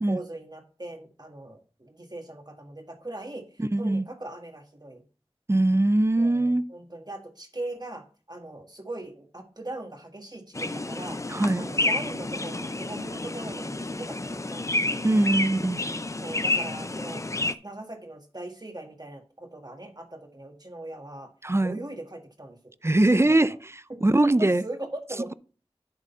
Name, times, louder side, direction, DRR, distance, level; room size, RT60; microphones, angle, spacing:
voice 1, 0.1-3.4 3.8-5.0 6.2-11.2 11.6-15.2 16.2-17.3 17.6-21.3 21.6-22.6 23.2-23.5 23.9-25.3, right 1 dB, 40° right, 1.7 m, -40 dB
voice 2, 3.6-4.0 5.5-6.6 11.3-11.7 15.0-15.8 21.4-21.8 22.8-24.6, right 2 dB, 25° right, 0.4 m, -22 dB
sound 1, 10.5-17.5, left 2 dB, 30° left, 0.5 m, -30 dB
10.5 x 3.9 x 5.4 m
wide cardioid pair, 45°, 11 cm